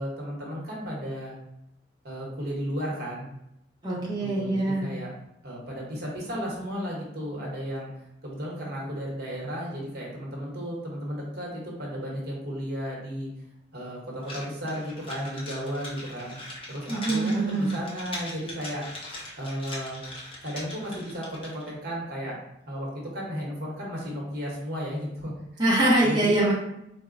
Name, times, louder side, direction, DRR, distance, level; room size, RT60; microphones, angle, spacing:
voice 1, 0.0-1.4 2.0-3.3 4.2-5.1 5.4-7.9 8.2-13.3 13.7-16.4 16.7-18.8 19.4-20.0 20.4-22.4 22.7-25.6 26.0-26.4, equal, 55° right, -3 dB, 1.0 m, -34 dB
voice 2, 3.8-4.9 16.9-17.7 25.6-26.5, right 1 dB, 25° right, -6 dB, 0.7 m, -23 dB
sound 1, 14.2-21.7, left 1 dB, 30° left, 0.7 m, -40 dB
4.0 x 2.1 x 2.5 m, 0.81 s
head